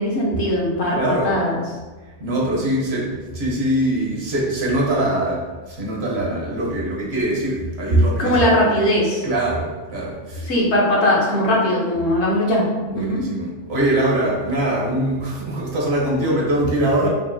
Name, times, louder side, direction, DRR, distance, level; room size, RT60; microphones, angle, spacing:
voice 1, 0.0-1.6 8.2-9.2 10.4-12.7 13.0-13.2, left 1 dB, 65° left, -4 dB, 1.1 m, -19 dB
voice 2, 0.9-1.4 2.2-8.4 9.2-10.5 12.9-17.1, right 1 dB, 60° right, -3 dB, 1.1 m, -22 dB
5.1 x 2.5 x 2.6 m, 1.3 s
omnidirectional pair, 1.2 m